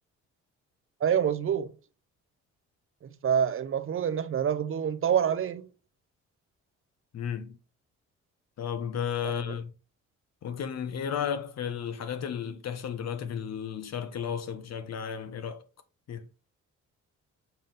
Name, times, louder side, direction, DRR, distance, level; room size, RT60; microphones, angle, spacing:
voice 1, 1.0-1.7 3.0-5.7 9.2-9.5, right 8 dB, 45° right, 0.7 m, -27 dB
voice 2, 7.1-7.6 8.6-9.7 10.4-15.6 16.1-16.3, left 8 dB, 60° left, 1.0 m, -33 dB
6.8 x 3.8 x 3.9 m
cardioid pair, 90°, 30 cm